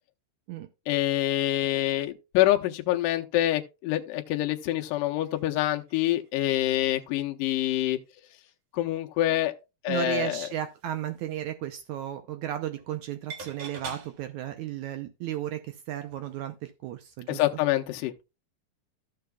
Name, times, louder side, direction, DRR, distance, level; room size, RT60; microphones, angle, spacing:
voice 1, 0.9-8.0 8.7-9.5 9.8-10.5 17.3-18.1, left 15 dB, 75° left, 2.2 m, -26 dB
sound 1, 4.4-6.5 6.9-7.1 7.5-8.5 8.9-9.0 10.1-11.5 12.7-13.0 13.3-14.7 16.1-16.5 16.9-17.0, right 5 dB, 55° right, 2.3 m, -48 dB
voice 2, 9.9-17.4, right 12 dB, 80° right, 1.7 m, -34 dB
14.5 x 6.7 x 2.3 m
omnidirectional pair, 4.1 m